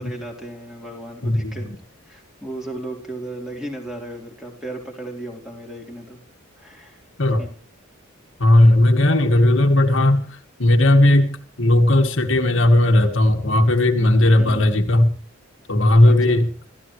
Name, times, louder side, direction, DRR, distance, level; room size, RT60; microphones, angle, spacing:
voice 1, 0.0-1.7 2.1-6.2 6.6-7.0 7.4-7.5 14.4-14.7 16.0-16.4, right 1 dB, ahead, 1 dB, 3.8 m, -35 dB
voice 2, 1.2-1.6 7.2-7.4 8.4-10.3 10.6-15.1 15.7-16.5, left 1 dB, 60° left, 4 dB, 2.0 m, -16 dB
27.5 x 14.0 x 3.2 m, 0.40 s
head